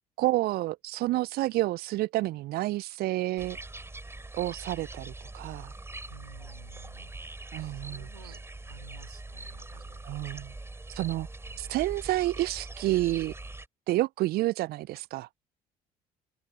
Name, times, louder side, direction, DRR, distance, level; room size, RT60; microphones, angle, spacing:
voice 1, 0.2-3.6 4.3-5.7 7.5-8.1 10.0-10.5 10.9-11.3 11.6-13.3 13.9-15.3, right 17 dB, 55° right, 0.7 m, -29 dB
sound 1, 3.4-13.7, right 2 dB, 15° right, 5.6 m, -43 dB
voice 2, 6.1-7.2 7.6-10.0 11.5-11.9, right 6 dB, 85° right, 3.5 m, -52 dB
open air
figure-of-eight pair, 55°, 19 cm